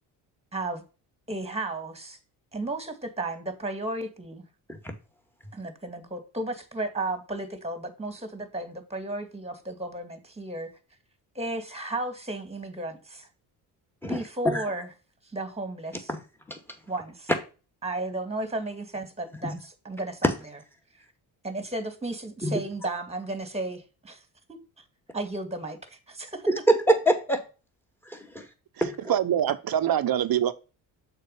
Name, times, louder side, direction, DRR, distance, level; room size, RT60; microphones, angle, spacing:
voice 1, 0.5-0.8 1.3-2.2 2.5-4.5 5.5-10.7 11.4-13.3 14.0-14.9 15.3-16.1 16.9-17.3 17.8-20.3 21.4-24.2 24.5-24.6 25.1-26.5, right 2 dB, 15° right, 2.0 m, -34 dB
voice 2, 14.0-14.7 16.1-16.2 16.5-16.6 19.4-19.6 20.2-20.3 22.4-22.6 26.5-27.4 28.1-28.5 28.8-29.1, right 1 dB, 5° left, 2.4 m, -25 dB
voice 3, 29.1-30.5, right 10 dB, 50° right, 1.0 m, -24 dB
6.6 x 4.8 x 5.4 m
supercardioid pair, 60°, 45 cm